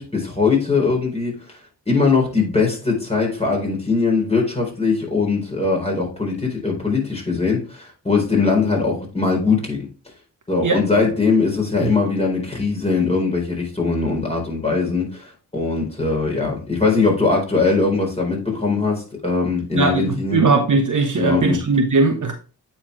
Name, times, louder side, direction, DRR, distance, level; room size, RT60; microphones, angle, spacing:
voice 1, 0.0-1.3 1.9-9.8 10.5-20.4 21.2-21.6, left 4 dB, 15° left, 0 dB, 4.0 m, -21 dB
voice 2, 19.7-22.3, right 3 dB, 45° right, 4 dB, 1.1 m, -19 dB
8.7 x 4.4 x 3.2 m, 0.35 s
cardioid pair, 55°, 42 cm